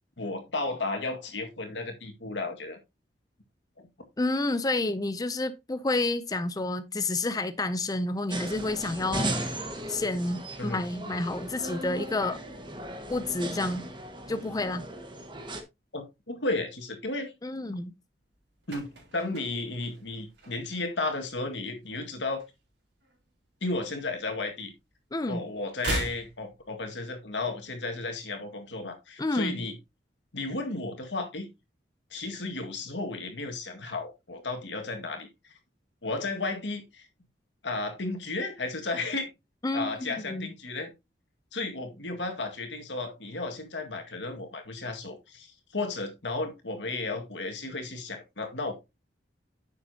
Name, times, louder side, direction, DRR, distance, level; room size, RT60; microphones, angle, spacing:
voice 1, 0.2-2.8 3.8-3.9 10.6-10.8 15.9-17.3 18.7-18.9 19.1-22.4 23.6-24.7 25.3-29.8 30.3-31.5 32.1-35.3 36.0-37.1 37.6-39.3 39.7-40.9 41.5-48.7, left 2 dB, 85° left, 2.0 m, -33 dB
voice 2, 4.2-12.4 13.1-13.8 14.3-14.9 17.4-17.9 25.1-25.5 29.2-29.6 39.6-40.5, left 2 dB, 20° left, 0.5 m, -30 dB
sound 1, 8.3-15.6, right 1 dB, 25° right, 1.6 m, -36 dB
sound 2, 18.3-21.0 21.2-21.5 21.8-23.3 23.6-24.9 25.2-27.3 27.5-27.6, right 2 dB, 70° right, 4.3 m, -39 dB
9.8 x 7.1 x 2.8 m
head